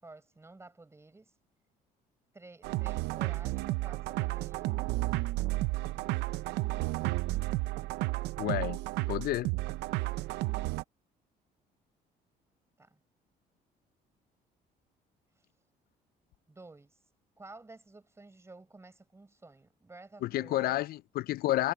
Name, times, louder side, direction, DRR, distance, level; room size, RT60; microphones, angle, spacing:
voice 1, 0.0-1.4 2.3-4.8 12.8-13.0 15.3-15.5 16.5-17.0 17.4-20.8, right 2 dB, 15° right, 5.5 m, -52 dB
sound 1, 2.6-10.8, right 19 dB, 90° right, 0.6 m, -32 dB
voice 2, 8.4-8.8 9.1-9.5 20.2-21.7, left 15 dB, 65° left, 0.5 m, -30 dB
cardioid pair, 110°, 17 cm